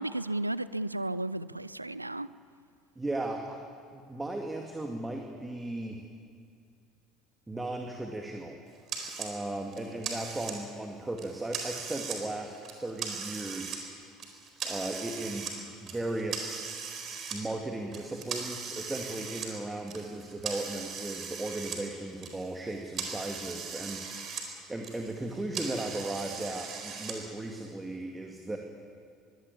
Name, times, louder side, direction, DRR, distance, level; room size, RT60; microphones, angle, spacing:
voice 1, 0.0-2.3, right 1 dB, 85° right, 17 dB, 0.5 m, -33 dB
voice 2, 3.0-3.6 3.9-6.0 7.5-8.6 9.2-12.6 12.8-13.9 14.6-16.6 17.3-28.6, right 2 dB, 10° right, 2 dB, 2.2 m, -36 dB
sound 1, 8.9-9.3 9.7-10.8 11.2-12.2 12.5-13.8 14.2-15.6 15.9-17.4 17.9-21.8 22.1-24.5 24.7-27.1, right 6 dB, 40° right, 4.4 m, -39 dB
22.5 x 17.0 x 8.6 m, 2.3 s
figure-of-eight pair, 65°, 0 cm